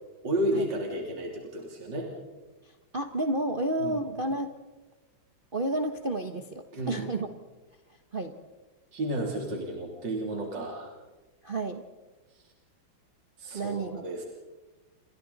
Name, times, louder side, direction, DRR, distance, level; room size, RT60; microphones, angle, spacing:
voice 1, 0.2-2.1 3.8-4.0 6.7-7.1 8.9-10.9 13.4-14.3, right 1 dB, 60° right, 0 dB, 3.8 m, -32 dB
voice 2, 2.9-4.5 5.5-7.3 8.1-8.3 11.4-11.8 13.5-14.0, right 2 dB, 30° right, 5 dB, 1.1 m, -31 dB
29.0 x 26.5 x 4.1 m, 1.2 s
omnidirectional pair, 2.2 m